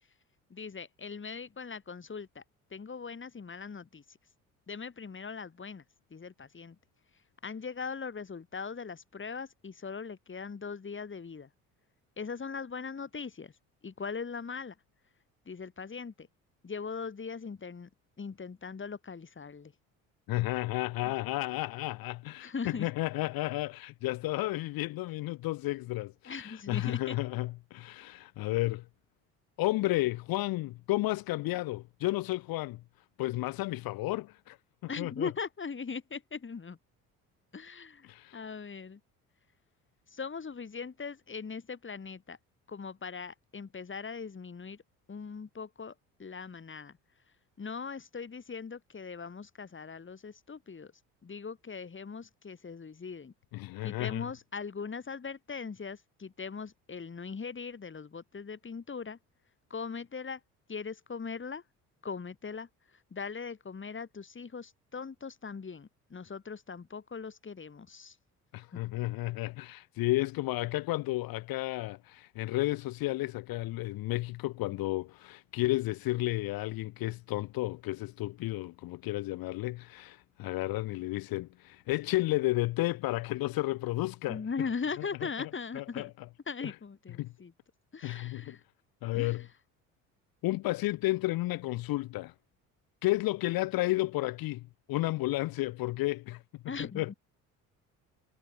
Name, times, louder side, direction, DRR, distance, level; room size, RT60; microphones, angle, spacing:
voice 1, 0.5-2.4 2.7-4.2 4.7-5.8 6.1-6.8 7.4-11.5 12.2-13.5 13.8-14.8 15.5-16.3 16.6-17.9 18.2-19.7 22.4-22.9 26.2-27.2 34.9-36.8 37.5-39.0 40.1-42.4 42.7-44.8 45.1-45.9 46.2-47.0 47.6-50.9 51.2-53.3 53.8-59.2 59.7-60.4 60.7-61.6 62.0-62.7 63.1-68.2 68.7-68.8 84.3-86.1 86.5-87.5 87.9-88.6 89.1-89.5 96.7-97.1, left 5 dB, 30° left, 3.9 m, -40 dB
voice 2, 20.3-28.8 29.6-32.8 33.2-34.6 35.0-35.3 38.0-38.4 53.5-54.2 68.5-84.7 85.0-85.5 85.7-86.3 86.6-86.7 87.2-87.3 88.0-88.6 89.0-89.4 90.4-92.3 93.0-96.4 96.8-97.1, left 18 dB, 60° left, 1.0 m, -32 dB
hypercardioid pair, 60°, 41 cm